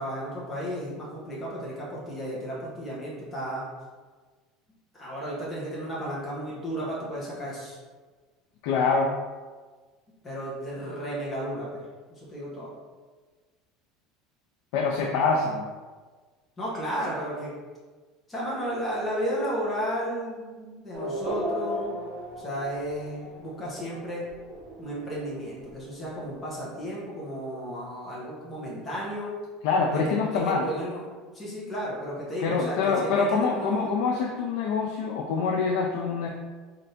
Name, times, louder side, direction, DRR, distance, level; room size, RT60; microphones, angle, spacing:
voice 1, 0.0-3.6 4.9-7.8 10.2-11.8 12.2-12.7 16.6-17.5 18.3-22.1 22.4-24.2 24.8-29.3 29.9-31.0 31.3-34.0, equal, 10° left, -7 dB, 0.8 m, -33 dB
voice 2, 8.6-9.1 14.7-15.7 29.6-30.7 32.4-36.3, left 4 dB, 60° left, 1 dB, 0.4 m, -25 dB
Race car auto racing / Accelerating revving vroom, 20.9-27.0, right 1 dB, 30° right, 0.8 m, -37 dB
3.3 x 2.6 x 4.1 m, 1.4 s
cardioid pair, 175°, 0 cm